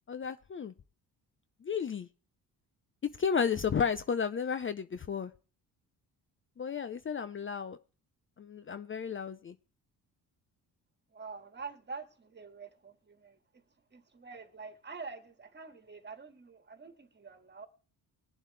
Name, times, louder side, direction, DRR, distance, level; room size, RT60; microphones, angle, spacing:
voice 1, 0.1-0.7 1.6-2.1 3.2-5.3 6.6-7.8 8.4-9.5, left 6 dB, 30° left, 0.6 m, -33 dB
voice 2, 11.1-13.6 13.9-17.7, right 4 dB, 25° right, 1.8 m, -46 dB
21.0 x 7.3 x 3.3 m
cardioid pair, 90°, 39 cm